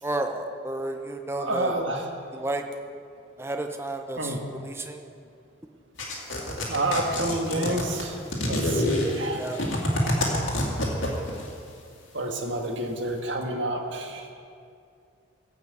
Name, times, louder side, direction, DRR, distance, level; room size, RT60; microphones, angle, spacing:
voice 1, 0.0-1.7 2.3-2.6 3.4-5.1 9.3-9.6, right 2 dB, 10° right, 4 dB, 0.7 m, -32 dB
voice 2, 1.4-2.0 4.2-4.4 6.7-8.2 8.4-9.4 12.1-14.3, right 1 dB, 65° right, 2 dB, 1.6 m, -29 dB
sound 1, 6.0-11.5, left 1 dB, 70° left, 2.5 m, -26 dB
16.5 x 6.1 x 7.7 m, 2.4 s
head